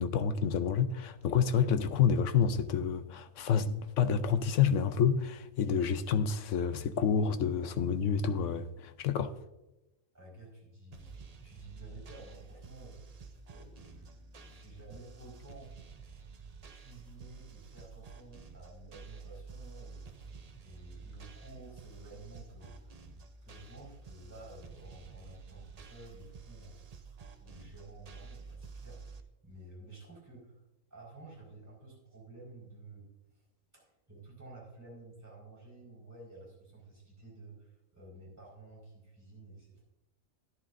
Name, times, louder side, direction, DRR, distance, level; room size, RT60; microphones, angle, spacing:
voice 1, 0.0-9.3, left 7 dB, 65° left, 0.9 m, -28 dB
voice 2, 10.1-11.1 11.4-15.7 16.7-20.3 20.6-23.1 23.4-26.8 27.4-30.6 30.9-33.1 33.3-33.4 33.7-39.8, right 2 dB, 10° right, 4.5 m, -52 dB
sound 1, 10.9-29.2, right 4 dB, 45° right, 0.5 m, -50 dB
13.5 x 11.5 x 2.6 m
omnidirectional pair, 1.5 m